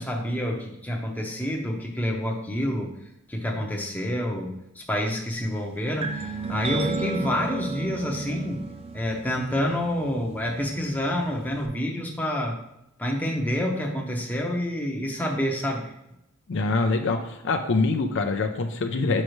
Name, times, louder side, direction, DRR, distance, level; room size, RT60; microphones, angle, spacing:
voice 1, 0.0-2.9 3.3-8.6 8.9-12.6 13.0-15.9, equal, 10° left, 0 dB, 0.7 m, -28 dB
sound 1, 6.0-11.7, right 4 dB, 25° right, 0.5 m, -35 dB
voice 2, 16.5-19.2, left 3 dB, 55° left, 6 dB, 0.5 m, -24 dB
6.4 x 5.3 x 3.1 m, 0.83 s
head